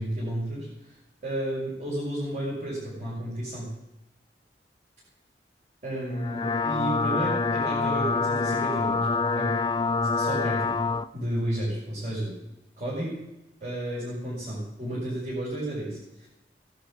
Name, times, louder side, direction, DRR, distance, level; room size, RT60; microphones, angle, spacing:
voice 1, 0.0-3.7 5.8-9.1 9.3-9.5 10.0-10.8 11.1-12.3 12.8-13.1 13.6-16.3, right 1 dB, 45° right, -7 dB, 5.8 m, -32 dB
sound 1, 6.1-11.1, left 4 dB, 25° left, 0.4 m, -26 dB
16.5 x 12.0 x 6.3 m, 0.91 s
head